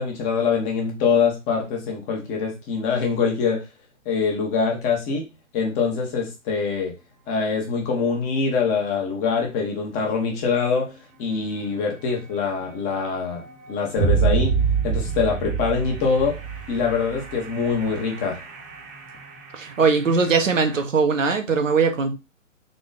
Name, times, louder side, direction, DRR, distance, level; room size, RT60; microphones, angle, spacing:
voice 1, 0.0-3.6 4.0-5.3 5.5-6.9 7.3-10.9 11.2-13.4 13.7-14.5 14.8-16.4 16.7-18.4, left 5 dB, 20° left, 1.1 m, -24 dB
sound 1, 9.1-9.2 9.6-9.7 11.7-11.8 12.1-20.8, right 6 dB, 25° right, 1.1 m, -28 dB
voice 2, 19.5-22.1, right 5 dB, 80° right, 1.2 m, -20 dB
3.9 x 3.1 x 3.9 m
hypercardioid pair, 140°, 38 cm